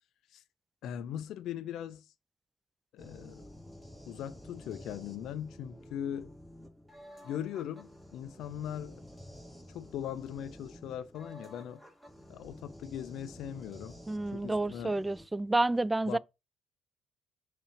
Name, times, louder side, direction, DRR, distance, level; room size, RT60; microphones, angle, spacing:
voice 1, 0.8-2.1 2.9-3.5 4.1-6.3 7.2-9.0 9.7-11.8 12.3-14.0 14.3-15.0 16.1-16.2, left 10 dB, 70° left, 0.5 m, -40 dB
sound 1, 3.0-15.3, equal, 5° right, 2.3 m, -51 dB
voice 2, 14.1-16.2, right 2 dB, 20° right, 0.4 m, -29 dB
6.2 x 3.4 x 5.0 m
hypercardioid pair, 45°, 0 cm